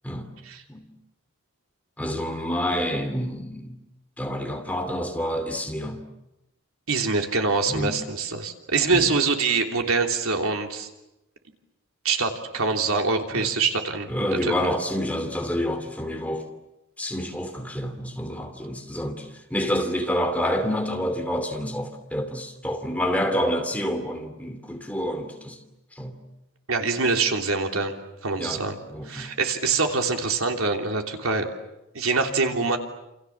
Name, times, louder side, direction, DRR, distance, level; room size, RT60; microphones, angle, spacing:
voice 1, 2.0-3.8 4.2-6.0 7.7-8.0 8.9-9.1 13.3-13.5 14.1-16.5 17.0-25.6 26.0-26.2 28.4-29.3, equal, 5° left, 2.7 m, -28 dB
voice 2, 6.9-10.9 12.0-14.1 14.4-14.5 26.7-28.0 28.2-28.8 29.0-31.5 31.9-32.8, right 4 dB, 80° right, 3.3 m, -24 dB
28.5 x 28.5 x 7.3 m
head